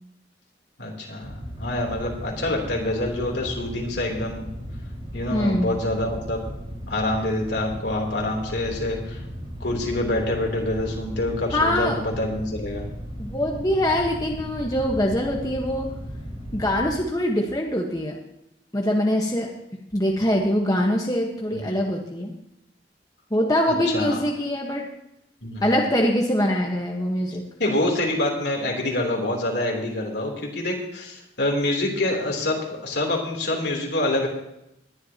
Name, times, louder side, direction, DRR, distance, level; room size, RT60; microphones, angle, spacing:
voice 1, 0.8-4.5 5.1-6.4 6.9-9.2 9.6-12.9 21.5-21.8 23.9-24.2 25.4-25.8 27.6-34.3, left 1 dB, 65° left, 0 dB, 3.3 m, -26 dB
sound 1, 1.2-17.0, equal, 35° right, 4.8 m, -36 dB
voice 2, 5.3-5.8 11.5-12.0 13.2-15.9 16.5-18.2 18.7-19.5 19.9-22.3 23.3-24.8 25.6-27.4, left 1 dB, 20° left, 0 dB, 1.3 m, -23 dB
20.5 x 11.0 x 2.9 m, 0.83 s
head